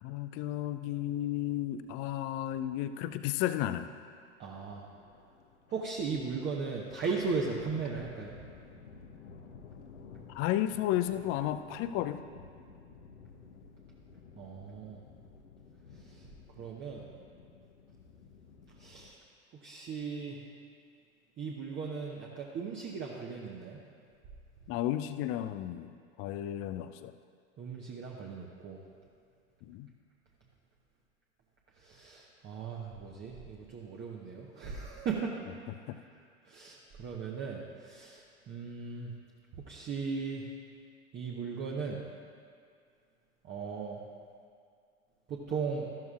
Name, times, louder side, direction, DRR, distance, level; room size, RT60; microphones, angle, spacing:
voice 1, 0.0-3.9 10.3-12.2 24.7-27.1 29.6-29.9 35.9-36.0, left 12 dB, 40° left, 11 dB, 0.5 m, -33 dB
sound 1, 4.4-19.1, left 5 dB, 75° left, 0.9 m, -54 dB
voice 2, 4.4-4.9 5.7-8.3 14.4-15.0 16.0-16.3 16.6-17.0 18.8-19.2 19.5-20.4 21.4-23.8 27.6-28.8 31.8-35.4 36.0-36.1 36.5-39.1 39.5-40.4 41.1-42.0 43.4-44.0 45.3-45.9, right 5 dB, 30° right, -2 dB, 1.1 m, -37 dB
14.0 x 12.0 x 2.5 m, 2.2 s
figure-of-eight pair, 80°, 34 cm